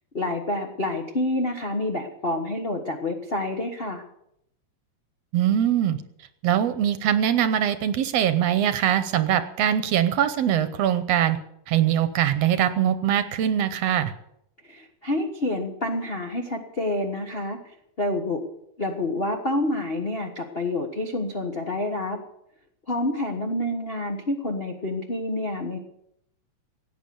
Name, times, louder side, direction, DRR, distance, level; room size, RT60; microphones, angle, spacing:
voice 1, 0.1-4.0 14.6-17.6 18.0-18.4 18.8-22.2 22.9-25.8, left 1 dB, 55° left, 0 dB, 0.6 m, -28 dB
voice 2, 5.3-6.0 6.4-11.4 11.7-14.1, right 10 dB, 70° right, 11 dB, 1.8 m, -22 dB
17.0 x 9.1 x 6.9 m, 0.77 s
omnidirectional pair, 3.3 m